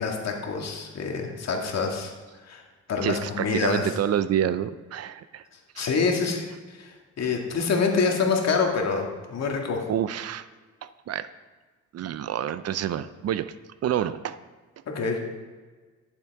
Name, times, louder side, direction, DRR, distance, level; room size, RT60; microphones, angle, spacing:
voice 1, 0.0-2.1 2.5-2.6 2.9-3.9 5.8-6.5 6.8-6.9 7.2-9.8 14.9-15.2, left 5 dB, 60° left, 1 dB, 2.0 m, -26 dB
voice 2, 3.0-5.4 5.8-5.9 9.9-10.5 10.8-11.3 11.9-13.5 13.8-14.4, right 10 dB, 55° right, 14 dB, 0.5 m, -28 dB
11.5 x 7.3 x 4.7 m, 1.4 s
cardioid pair, 90°, 30 cm